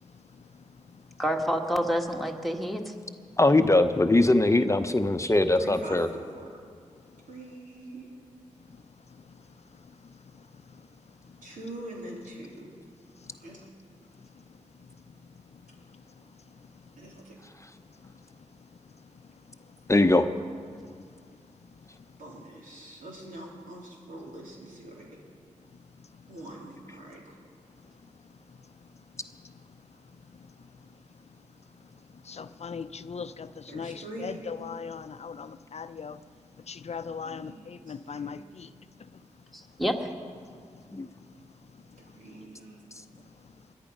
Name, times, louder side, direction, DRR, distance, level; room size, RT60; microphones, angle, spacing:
voice 1, 1.2-2.9 39.5-40.1, equal, ahead, 3 dB, 1.8 m, -28 dB
voice 2, 3.4-6.1 19.9-20.3 40.9-41.1, left 2 dB, 20° left, 8 dB, 0.8 m, -21 dB
voice 3, 5.6-6.5 7.3-8.2 11.4-12.8 13.4-13.6 16.9-17.4 22.2-25.2 26.3-27.3 33.7-34.4 37.2-38.5 42.0-42.8, right 1 dB, 80° right, -3 dB, 3.5 m, -43 dB
voice 4, 10.1-10.4 10.7-10.8 13.2-13.3 29.4-29.5 30.4-30.5 32.2-36.2 36.7-38.7, left 6 dB, 55° left, 13 dB, 0.5 m, -39 dB
21.0 x 11.0 x 5.4 m, 2.1 s
supercardioid pair, 40°, 13 cm